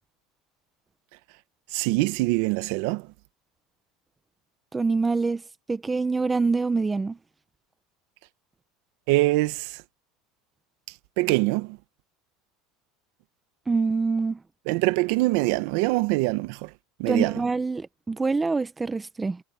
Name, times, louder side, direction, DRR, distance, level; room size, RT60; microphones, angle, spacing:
voice 1, 1.7-3.1 9.1-9.8 11.2-11.8 14.7-16.7 17.0-17.4, right 21 dB, 70° right, 1.0 m, -24 dB
voice 2, 4.7-5.4 5.7-7.2 13.7-14.4 17.1-19.4, right 4 dB, 15° right, 0.9 m, -25 dB
supercardioid pair, 140°, 0 cm